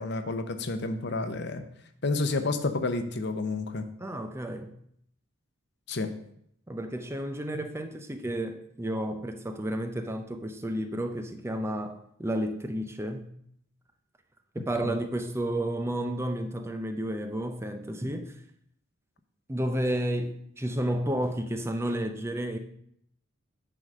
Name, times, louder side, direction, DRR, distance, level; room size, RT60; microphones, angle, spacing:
voice 1, 0.0-1.6 2.0-3.8 5.9-6.1 14.6-15.0, left 3 dB, 55° left, 8 dB, 0.8 m, -30 dB
voice 2, 4.0-4.7 6.7-13.3 14.5-18.4 19.5-22.6, right 1 dB, 15° right, 7 dB, 0.5 m, -31 dB
9.3 x 4.0 x 6.3 m, 0.70 s
head